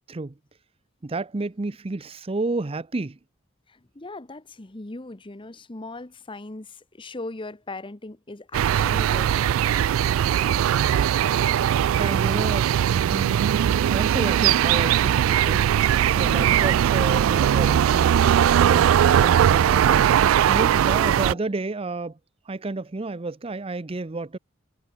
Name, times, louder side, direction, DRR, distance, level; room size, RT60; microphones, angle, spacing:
voice 1, 1.0-3.2 12.0-13.4 13.9-15.7 16.2-18.3 18.6-20.1 20.5-22.2 22.5-24.4, right 3 dB, 30° right, 0.6 m, -31 dB
voice 2, 3.7-9.6 16.2-16.6 21.2-21.4, left 2 dB, 25° left, 1.0 m, -39 dB
sound 1, 8.5-21.3, right 10 dB, 90° right, 0.3 m, -20 dB
head